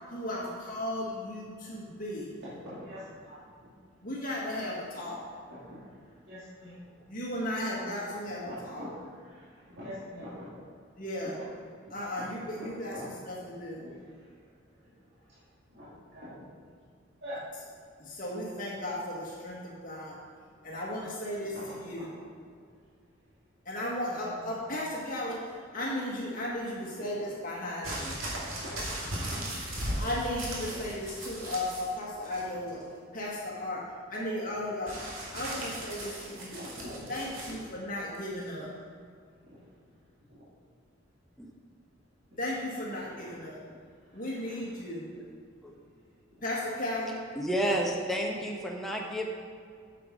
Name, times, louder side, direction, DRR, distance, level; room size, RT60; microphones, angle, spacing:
voice 1, 0.0-2.4 4.0-5.2 7.1-8.8 11.0-11.4 11.9-13.8 18.0-20.2 20.6-22.1 23.6-28.2 30.0-32.8 33.1-33.8 34.1-34.9 35.3-36.6 37.1-38.7 42.4-43.6 44.1-45.1 46.4-47.2, left 1 dB, 45° left, -4 dB, 1.7 m, -35 dB
voice 2, 2.4-3.4 5.5-6.0 6.3-6.8 8.4-10.6 12.2-12.3 12.6-13.1 13.8-13.9 14.8-14.9 15.2-15.4 15.7-16.4 17.2-17.4 21.4-22.1 24.1-24.5 28.5-29.9 30.7-30.8 35.5-35.6 36.0-37.1 39.4-39.6 40.3-40.5 42.9-43.1 44.1-44.7, equal, 55° right, -11 dB, 2.5 m, -45 dB
sound 1, 27.8-31.9 32.2-32.8 34.9-37.6 38.4-38.5, right 1 dB, 85° right, 2.4 m, -37 dB
voice 3, 47.4-49.2, equal, ahead, -1 dB, 1.0 m, -30 dB
8.4 x 7.2 x 5.1 m, 2.2 s
head